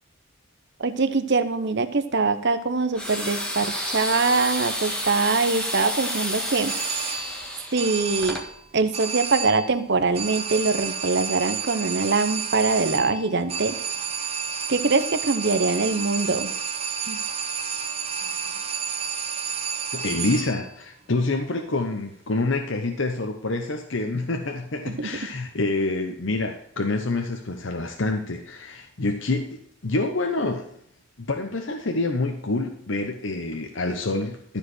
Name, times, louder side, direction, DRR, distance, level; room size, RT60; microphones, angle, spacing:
voice 1, 0.8-6.7 7.7-8.4 8.7-13.8 14.7-16.5 17.1-17.2 25.0-25.1, right 3 dB, 55° right, 10 dB, 0.9 m, -23 dB
sound 1, 2.9-8.5, equal, 5° left, 1.5 m, -30 dB
sound 2, 6.7-7.5 7.8-8.6 8.9-9.8 10.1-20.7, right 6 dB, 30° right, 0.8 m, -30 dB
voice 2, 19.9-30.7 31.2-34.6, left 2 dB, 60° left, 4 dB, 1.0 m, -27 dB
12.5 x 5.1 x 6.2 m, 0.67 s
head